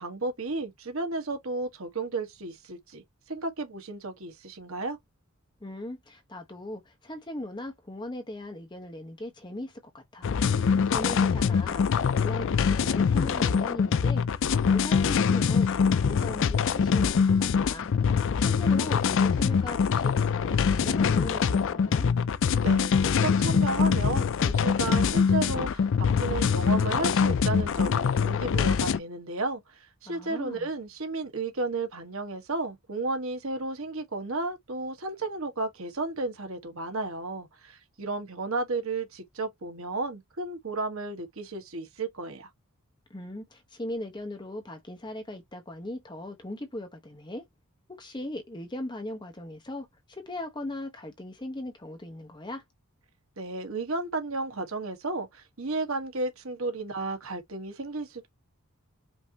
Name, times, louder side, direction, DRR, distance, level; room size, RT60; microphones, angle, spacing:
voice 1, 0.0-5.0 22.6-42.5 53.4-58.3, right 3 dB, 65° right, 1.3 m, -33 dB
voice 2, 5.6-10.3 10.6-17.9 18.4-22.1 30.0-30.7 43.1-47.4 48.0-52.6, left 1 dB, 20° left, 0.9 m, -39 dB
sound 1, 10.2-29.0, left 6 dB, 60° left, 0.4 m, -24 dB
5.3 x 2.8 x 2.8 m
head